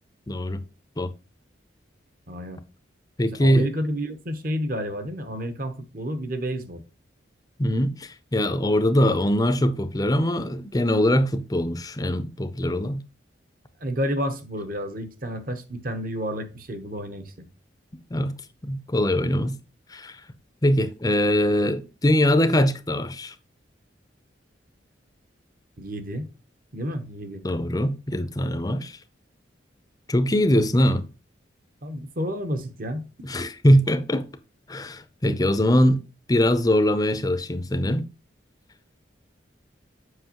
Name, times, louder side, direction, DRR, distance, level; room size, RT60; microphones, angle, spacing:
voice 1, 0.3-0.6 1.0-1.1 3.2-3.7 7.6-13.0 18.1-18.3 18.7-19.6 19.9-20.2 20.6-23.3 27.4-29.0 30.1-31.1 33.2-34.2 34.7-36.0 36.3-38.0, equal, 20° left, 0.6 m, -22 dB
voice 2, 2.3-2.6 3.4-6.8 13.8-17.5 25.8-26.3 26.7-27.4 31.8-33.1, equal, 50° right, 1.0 m, -30 dB
7.8 x 5.4 x 2.9 m
head